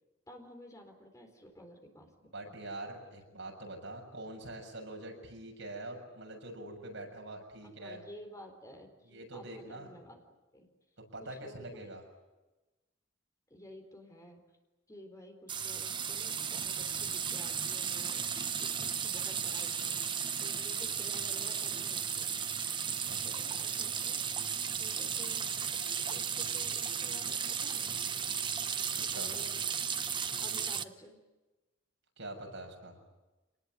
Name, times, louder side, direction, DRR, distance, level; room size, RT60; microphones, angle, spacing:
voice 1, 0.3-2.1 2.5-2.6 7.8-10.2 10.5-10.7 11.2-11.8 13.5-14.4 14.9-22.4 23.2-24.3 24.7-25.8 26.1-28.0 29.1-29.6 30.4-31.2, equal, 15° left, 4 dB, 4.1 m, -52 dB
voice 2, 2.3-8.0 9.1-9.9 11.1-12.0 22.8-23.3 28.9-29.3 32.2-32.9, right 1 dB, 70° right, 2 dB, 6.9 m, -44 dB
sound 1, 15.5-30.8, right 7 dB, 25° right, 0.8 m, -35 dB
27.0 x 20.0 x 9.9 m, 1.1 s
head